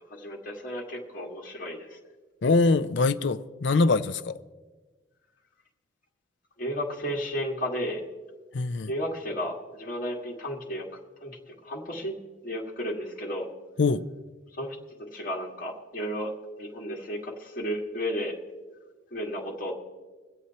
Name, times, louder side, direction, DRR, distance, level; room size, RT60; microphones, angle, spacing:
voice 1, 0.1-2.0 6.6-8.0 8.9-10.9 11.2-12.2 12.4-13.5 14.5-14.8 15.1-16.3 16.6-18.3 19.1-19.7, equal, 45° left, 2.0 m, -33 dB
voice 2, 2.4-4.3 8.5-8.9 13.8-14.0, left 3 dB, 65° left, 0.5 m, -23 dB
23.0 x 7.9 x 4.2 m
head